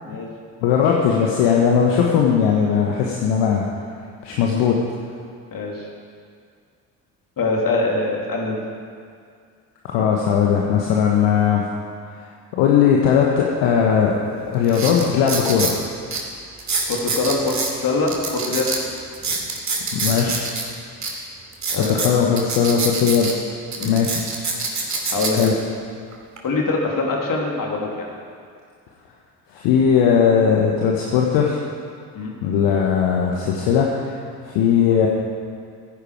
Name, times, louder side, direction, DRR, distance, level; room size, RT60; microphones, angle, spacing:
voice 1, 0.6-3.7 4.2-4.8 9.8-11.6 12.6-15.7 19.9-20.4 21.9-23.3 23.8-24.2 25.4-25.5 29.5-31.6 32.4-34.2 34.4-35.1, left 7 dB, 60° left, -1 dB, 1.4 m, -18 dB
voice 2, 5.5-5.9 7.4-8.6 16.9-18.7 21.7-22.3 23.8-24.0 25.1-25.5 26.4-28.1 32.1-32.3, left 3 dB, 40° left, -1 dB, 2.9 m, -23 dB
sound 1, 14.0-14.1 14.6-15.8 16.1-16.2 16.6-17.7 18.1-20.6 21.0-21.1 21.5-23.3 23.7-25.5 26.1-26.4, right 4 dB, 35° right, 2.6 m, -25 dB
15.5 x 10.0 x 4.9 m, 2.2 s
figure-of-eight pair, 50°, 49 cm